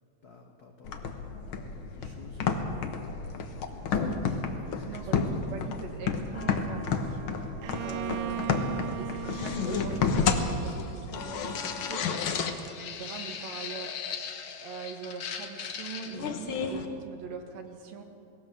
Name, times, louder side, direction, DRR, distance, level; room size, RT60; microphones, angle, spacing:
voice 1, 0.2-4.1 4.5-5.1 7.9-8.1, left 4 dB, 75° left, 3 dB, 0.8 m, -53 dB
sound 1, 0.8-16.9, left 5 dB, 60° left, 1.5 m, -32 dB
voice 2, 4.9-14.4 14.6-18.0, right 6 dB, 60° right, 4 dB, 2.6 m, -42 dB
sound 2, 6.3-12.4, left 3 dB, 25° left, 0.3 m, -50 dB
Bowed string instrument, 7.6-11.4, right 11 dB, 80° right, 2.1 m, -38 dB
20.0 x 17.0 x 7.7 m, 2.6 s
omnidirectional pair, 3.6 m